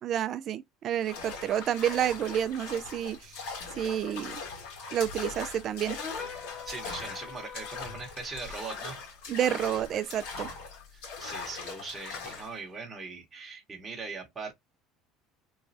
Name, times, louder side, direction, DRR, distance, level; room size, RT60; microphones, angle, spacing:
voice 1, 0.0-3.3 3.8-4.4 4.9-6.0 9.3-10.5, right 10 dB, 45° right, 0.4 m, -29 dB
sound 1, 1.0-12.6, left 4 dB, 80° left, 1.6 m, -40 dB
sound 2, 6.0-8.2, left 7 dB, 30° left, 1.1 m, -43 dB
voice 2, 6.6-9.0 10.9-14.5, right 4 dB, 15° right, 1.0 m, -41 dB
3.1 x 2.2 x 2.7 m
supercardioid pair, 115°, 0 cm